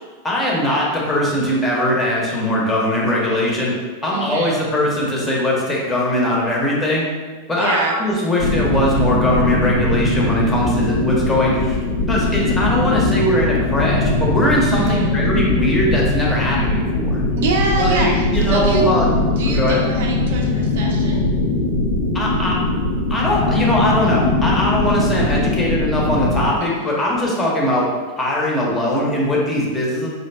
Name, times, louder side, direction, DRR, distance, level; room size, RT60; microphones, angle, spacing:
voice 1, 0.2-7.1 7.5-11.8 12.1-17.2 17.8-19.1 19.5-19.8 22.1-22.5 23.1-27.9 28.2-30.1, left 1 dB, 15° left, -4 dB, 0.8 m, -20 dB
voice 2, 4.1-4.6 7.5-8.0 14.7-15.1 17.4-18.8 19.4-21.3 26.6-27.0, right 3 dB, 55° right, 1 dB, 0.4 m, -25 dB
sound 1, 8.4-26.5, left 2 dB, 60° left, 0.7 m, -20 dB
4.0 x 2.7 x 2.2 m, 1.5 s
figure-of-eight pair, 90°, 0 cm